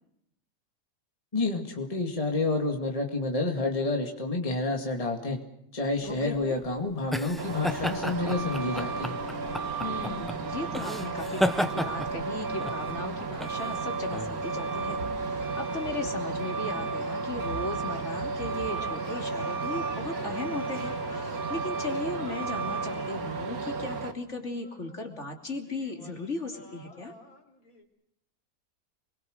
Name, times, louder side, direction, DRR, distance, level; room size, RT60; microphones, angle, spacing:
voice 1, 1.3-5.4 5.7-9.1, left 2 dB, 25° left, 3 dB, 2.3 m, -29 dB
voice 2, 6.0-6.6 9.8-27.1, left 2 dB, 50° left, 4 dB, 3.4 m, -37 dB
sound 1, 6.0-15.2, equal, ahead, 0.5 m, -33 dB
Truck, 7.4-24.1, right 4 dB, 70° right, 2.1 m, -33 dB
sound 2, 18.6-25.2 25.6-27.8, left 2 dB, 65° left, 3.8 m, -49 dB
28.5 x 22.5 x 6.6 m, 0.77 s
omnidirectional pair, 1.6 m